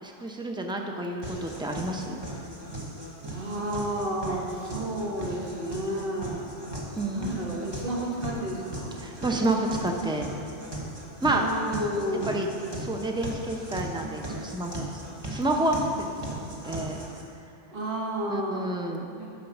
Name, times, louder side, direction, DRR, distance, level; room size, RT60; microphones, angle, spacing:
voice 1, 0.0-2.2 6.9-7.4 9.0-10.3 11.2-12.5 12.8-14.8 15.3-17.0 18.3-19.1, right 1 dB, 5° right, 2 dB, 0.5 m, -29 dB
sound 1, 1.2-17.2, right 1 dB, 20° right, 1.2 m, -38 dB
voice 2, 3.3-6.5 7.1-8.9 11.3-12.4 17.7-18.7 19.2-19.3, right 1 dB, 50° right, -3 dB, 1.8 m, -31 dB
9.6 x 5.8 x 6.0 m, 2.5 s
omnidirectional pair, 1.2 m